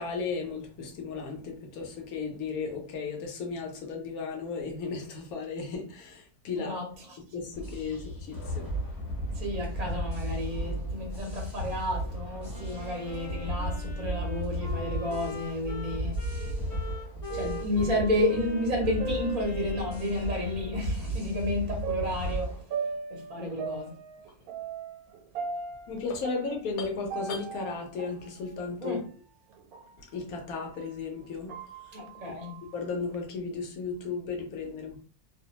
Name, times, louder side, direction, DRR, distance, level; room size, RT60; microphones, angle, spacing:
voice 1, 0.0-6.8 7.3-8.7 23.4-23.5 25.9-29.0 30.0-31.5 31.8-32.0 32.7-35.0, left 4 dB, 75° left, 1.2 m, -35 dB
voice 2, 6.6-7.2 9.3-16.2 17.3-22.7 23.1-24.0 28.8-29.0 31.9-32.6, left 1 dB, 45° right, 0.5 m, -31 dB
sound 1, 7.5-22.6, equal, 15° left, 0.9 m, -35 dB
Wind instrument woodwind instrument, 12.5-21.0, left 1 dB, 45° left, 1.1 m, -43 dB
sound 2, 15.6-20.3 20.7-20.8 21.8-30.9 31.3-33.1, right 5 dB, 85° right, 1.1 m, -39 dB
2.7 x 2.1 x 2.8 m
omnidirectional pair, 1.5 m